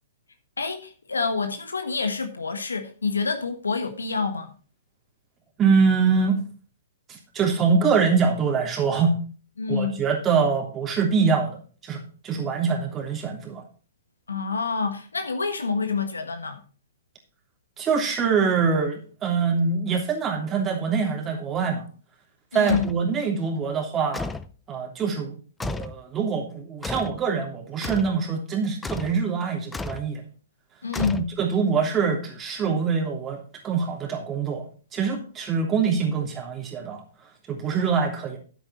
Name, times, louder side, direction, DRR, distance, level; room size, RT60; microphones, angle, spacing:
voice 1, 0.6-4.5 9.6-10.0 14.3-16.6 22.5-22.8 30.8-31.2, left 4 dB, 85° left, 1.4 m, -27 dB
voice 2, 5.6-6.4 7.1-9.2 9.7-13.6 17.8-21.8 22.5-24.3 24.7-25.4 25.6-30.2 31.1-34.6 34.9-37.0 37.5-38.4, right 5 dB, 20° right, 3.2 m, -24 dB
sound 1, 22.7-23.0 24.1-24.5 25.6-26.0 26.8-27.2 27.8-28.2 28.8-29.2 29.7-30.1 30.9-31.6, left 3 dB, 10° left, 0.5 m, -33 dB
10.0 x 8.2 x 4.3 m
hypercardioid pair, 125°, 0 cm